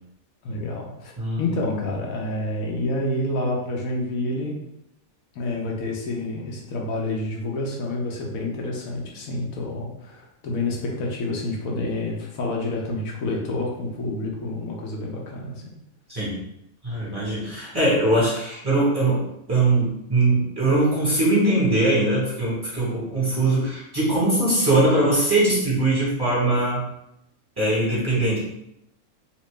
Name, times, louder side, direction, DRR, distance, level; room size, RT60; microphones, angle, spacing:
voice 1, 0.4-1.1 1.4-4.6 5.3-15.8, left 2 dB, 75° left, -1 dB, 1.1 m, -28 dB
voice 2, 1.2-1.7 16.1-16.4 16.8-26.8 27.6-28.4, right 2 dB, 15° right, -8 dB, 1.2 m, -21 dB
3.0 x 2.9 x 3.2 m, 0.82 s
omnidirectional pair, 1.5 m